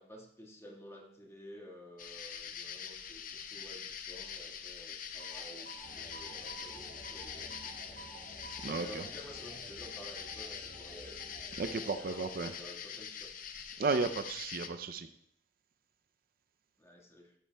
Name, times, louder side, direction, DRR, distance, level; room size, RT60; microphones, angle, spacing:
voice 1, 0.0-8.1 8.6-11.2 11.7-13.3 16.8-17.3, left 1 dB, 15° left, 0 dB, 1.6 m, -52 dB
sound 1, 2.0-14.7, left 7 dB, 50° left, 0.6 m, -44 dB
sound 2, 5.2-13.0, right 4 dB, 75° right, 3.5 m, -54 dB
sound 3, 5.8-11.7, equal, 90° left, 2.3 m, -55 dB
voice 2, 8.6-9.0 11.6-12.5 13.8-15.1, right 4 dB, 55° right, 9 dB, 0.5 m, -34 dB
15.0 x 9.7 x 2.3 m, 0.72 s
head